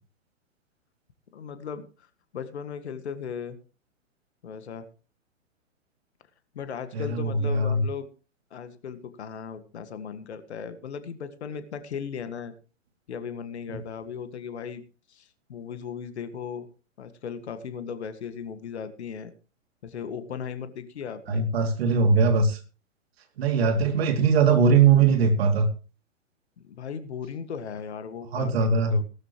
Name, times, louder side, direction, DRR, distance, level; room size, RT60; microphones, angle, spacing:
voice 1, 1.3-2.1 2.3-3.6 4.4-4.9 6.5-8.1 8.5-12.5 13.1-14.8 15.1-16.7 17.0-19.3 19.8-21.5 23.6-23.7 26.6-29.0, left 7 dB, 55° left, 11 dB, 1.8 m, -37 dB
voice 2, 6.9-7.8 21.3-22.6 23.4-25.7 28.3-29.0, right 5 dB, 50° right, 7 dB, 2.8 m, -21 dB
18.0 x 13.0 x 3.1 m, 0.35 s
figure-of-eight pair, 115°, 39 cm